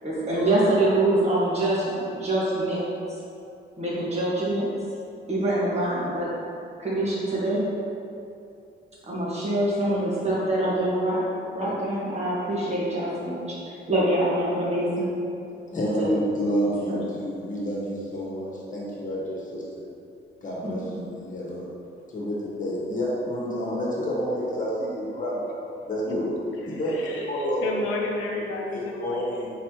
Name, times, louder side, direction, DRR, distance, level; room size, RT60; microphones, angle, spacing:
voice 1, 0.0-2.8 3.1-3.2 3.8-4.7 5.3-6.4 6.8-7.7 9.0-11.2 11.5-13.6 13.9-15.1 16.0-16.2 16.9-17.2 20.6-20.9, right 1 dB, 35° right, -7 dB, 1.5 m, -25 dB
voice 2, 15.7-19.8 20.4-21.7 22.1-25.4 25.9-26.3 26.7-27.7 28.7-29.5, equal, 40° left, -5 dB, 1.4 m, -29 dB
voice 3, 26.6-29.4, left 3 dB, 85° left, 0 dB, 0.6 m, -32 dB
4.3 x 4.2 x 3.0 m, 2.6 s
cardioid pair, 90°, 20 cm